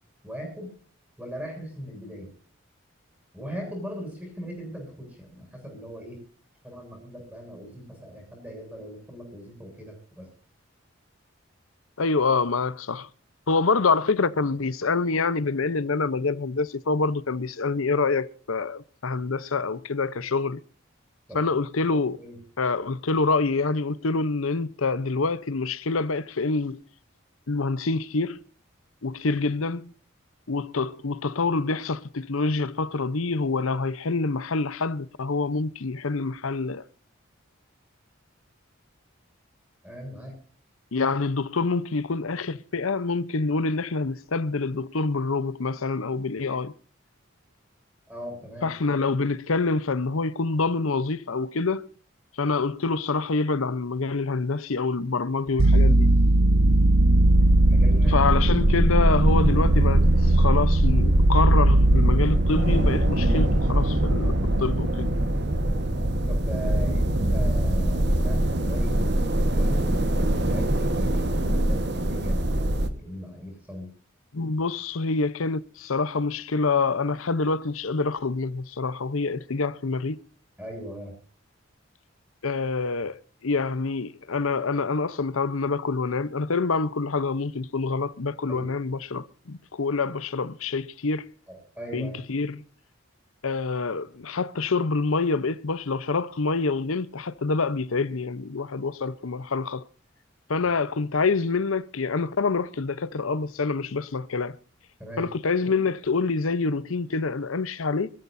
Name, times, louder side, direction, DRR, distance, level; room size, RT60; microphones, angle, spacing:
voice 1, 0.2-0.7 1.2-2.3 3.3-6.2 6.6-10.3 21.3-21.5 22.2-22.4 29.3-29.5 39.8-40.3 48.1-48.7 57.7-58.2 66.3-73.9 80.6-81.1 88.5-88.7 91.5-92.2 105.0-105.3, equal, 10° right, 7.6 m, -39 dB
voice 2, 12.0-13.1 13.5-20.6 21.3-22.2 22.6-26.8 27.5-28.4 29.0-29.9 30.5-36.8 40.9-46.7 48.6-51.9 52.4-56.1 58.1-65.2 74.3-80.2 82.4-91.3 91.9-92.6 93.4-99.8 100.5-104.6 105.2-108.1, left 4 dB, 85° left, 0.8 m, -26 dB
sound 1, 55.5-72.9, right 1 dB, 55° right, 1.4 m, -23 dB
sound 2, 55.6-65.2, right 2 dB, 85° right, 0.7 m, -21 dB
24.5 x 14.0 x 2.6 m
head